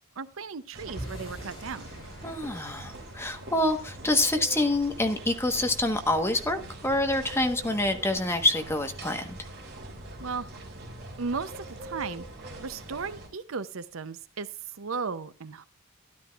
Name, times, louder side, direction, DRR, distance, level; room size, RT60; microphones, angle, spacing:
voice 1, 0.0-1.9 10.2-10.5 11.2-12.2 12.6-14.5 14.8-15.6, right 5 dB, 75° right, 14 dB, 0.7 m, -35 dB
sound 1, 0.7-13.3, right 1 dB, 55° right, 3.3 m, -43 dB
sound 2, 1.0-7.3, equal, 70° left, 7.0 m, -47 dB
voice 2, 2.2-9.4, left 1 dB, 10° left, 6 dB, 1.2 m, -26 dB
13.0 x 11.5 x 2.4 m, 0.33 s
head